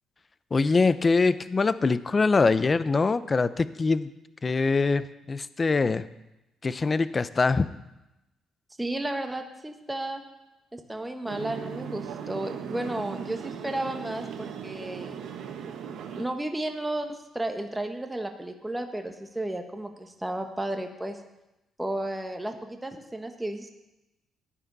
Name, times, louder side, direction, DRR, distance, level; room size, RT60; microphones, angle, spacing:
voice 1, 0.5-4.1 4.4-6.1 6.6-7.7, left 4 dB, 30° left, 15 dB, 0.6 m, -23 dB
voice 2, 8.8-10.2 10.7-15.2 16.1-21.2 21.8-23.7, right 1 dB, 10° right, 5 dB, 1.3 m, -33 dB
sound 1, 11.3-16.3, right 7 dB, 80° right, 1.3 m, -38 dB
15.0 x 10.0 x 4.0 m, 0.95 s
cardioid pair, 90°, 0 cm